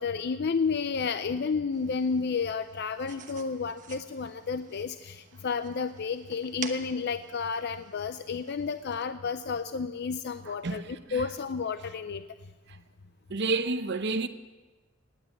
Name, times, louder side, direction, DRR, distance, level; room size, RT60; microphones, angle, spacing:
voice 1, 0.0-12.2, left 5 dB, 50° left, 0.5 m, -31 dB
sound 1, 1.7-9.0, right 7 dB, 40° right, 1.1 m, -48 dB
voice 2, 10.5-11.2 12.7-12.8 13.3-14.3, right 3 dB, 55° right, 0.8 m, -30 dB
18.0 x 9.9 x 7.2 m
head